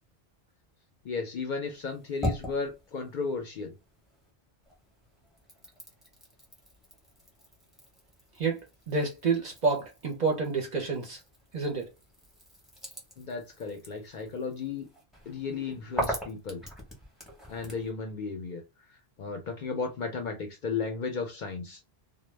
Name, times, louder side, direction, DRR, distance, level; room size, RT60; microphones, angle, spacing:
voice 1, 1.0-3.7 13.2-14.9 15.3-16.6 17.5-18.6 19.2-21.8, left 4 dB, 60° left, 0.6 m, -34 dB
sound 1, 1.6-4.3 4.6-17.9, equal, ahead, 0.7 m, -41 dB
voice 2, 8.9-11.2 11.5-11.9, right 4 dB, 50° right, 0.6 m, -28 dB
2.1 x 2.0 x 3.1 m
omnidirectional pair, 1.1 m